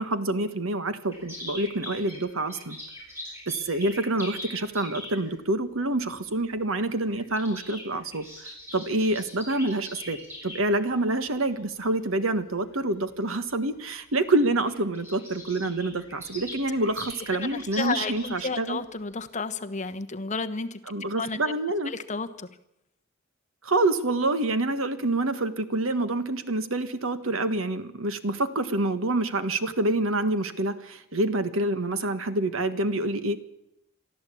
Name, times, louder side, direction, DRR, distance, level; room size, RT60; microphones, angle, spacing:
voice 1, 0.0-2.8 3.5-10.2 10.4-18.8 20.9-21.9 23.6-33.4, right 2 dB, 70° right, 11 dB, 1.5 m, -27 dB
sound 1, 1.1-5.3 6.4-6.6 6.9-10.6 11.3-11.6 12.2-12.3 12.6-12.8 13.7-13.8 14.1-14.2 14.3-18.7 19.1-19.2, left 1 dB, 10° right, 7.8 m, -42 dB
voice 2, 17.3-20.8 21.2-21.5 21.8-22.5, left 4 dB, 35° left, 9 dB, 1.2 m, -32 dB
22.5 x 14.0 x 8.5 m, 0.82 s
head